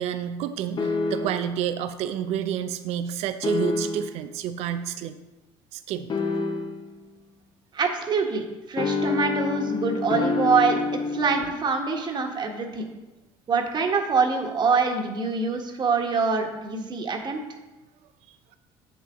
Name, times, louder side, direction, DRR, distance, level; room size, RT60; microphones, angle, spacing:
voice 1, 0.0-5.2 5.7-6.1, right 9 dB, 65° right, 10 dB, 0.5 m, -29 dB
sound 1, 0.8-1.6 3.4-4.2 6.1-6.9 8.8-11.4, left 4 dB, 40° left, 0.9 m, -27 dB
voice 2, 7.7-12.9 13.5-17.4, right 4 dB, 40° right, 3 dB, 1.4 m, -25 dB
7.3 x 6.9 x 3.7 m, 1.1 s
supercardioid pair, 80°, 12 cm